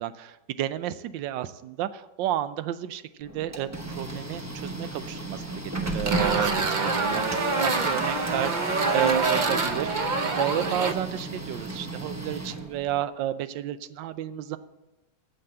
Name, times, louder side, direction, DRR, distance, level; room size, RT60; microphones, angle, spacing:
voice 1, 0.0-3.7 4.0-7.3 7.6-14.6, right 11 dB, 90° right, 14 dB, 1.3 m, -31 dB
Printer, 3.2-13.0, right 2 dB, 15° right, 0.5 m, -35 dB
sound 1, 6.1-10.9, right 3 dB, 70° right, 0.4 m, -26 dB
9.0 x 6.9 x 7.7 m, 0.99 s
omnidirectional pair, 1.9 m